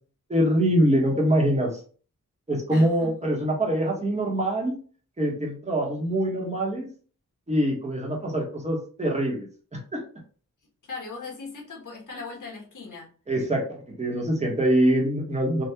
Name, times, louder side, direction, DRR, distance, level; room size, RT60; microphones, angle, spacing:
voice 1, 0.3-1.8 2.5-4.8 5.2-6.9 7.5-10.0 13.3-15.6, right 1 dB, 20° right, -1 dB, 1.1 m, -24 dB
voice 2, 2.7-3.1 10.9-13.1, left 4 dB, 65° left, -3 dB, 1.4 m, -38 dB
3.5 x 2.4 x 2.8 m, 0.40 s
wide cardioid pair, 100°, 34 cm